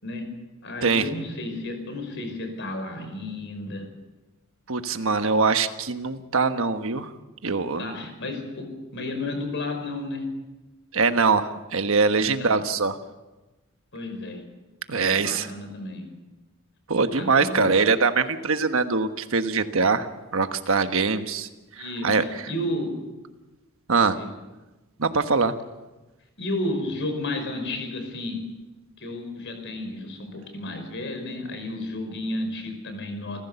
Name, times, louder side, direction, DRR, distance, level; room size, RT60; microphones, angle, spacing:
voice 1, 0.6-3.9 7.8-10.3 12.2-12.6 13.9-14.4 14.9-16.1 17.1-17.7 21.8-22.9 23.9-24.3 26.4-28.4 29.0-33.4, left 1 dB, 55° left, 6 dB, 5.4 m, -32 dB
voice 2, 4.7-7.1 7.4-8.0 10.9-13.0 14.9-15.5 16.9-21.5 22.0-22.2 23.9-24.2 25.0-25.5, right 4 dB, 65° right, 8 dB, 1.3 m, -23 dB
28.5 x 15.5 x 7.0 m, 1.1 s
head